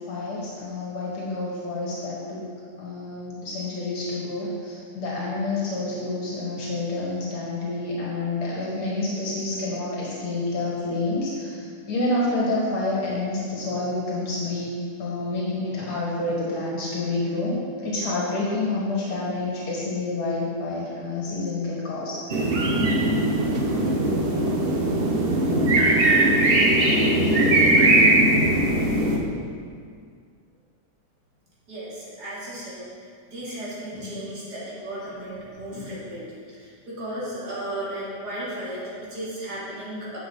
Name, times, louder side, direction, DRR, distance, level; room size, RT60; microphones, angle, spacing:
voice 1, 0.1-2.4 2.8-14.7 15.0-22.4 27.3-27.8 33.9-34.1 35.7-35.9, left 2 dB, 75° left, -5 dB, 2.2 m, -28 dB
sound 1, 22.3-29.2, right 1 dB, 45° right, 0.9 m, -20 dB
voice 2, 31.7-32.8 33.3-40.2, right 1 dB, 75° right, -8 dB, 3.0 m, -35 dB
9.5 x 7.0 x 3.9 m, 2.1 s
omnidirectional pair, 1.7 m